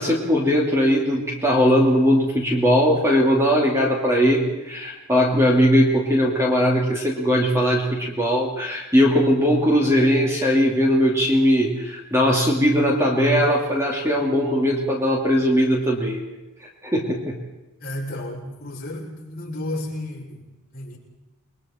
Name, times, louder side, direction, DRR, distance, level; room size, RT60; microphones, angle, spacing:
voice 1, 0.0-16.3 16.6-17.4, equal, 10° right, -1 dB, 2.6 m, -19 dB
voice 2, 17.8-21.0, left 1 dB, 45° left, -4 dB, 6.6 m, -33 dB
29.0 x 22.0 x 4.4 m, 1.1 s
head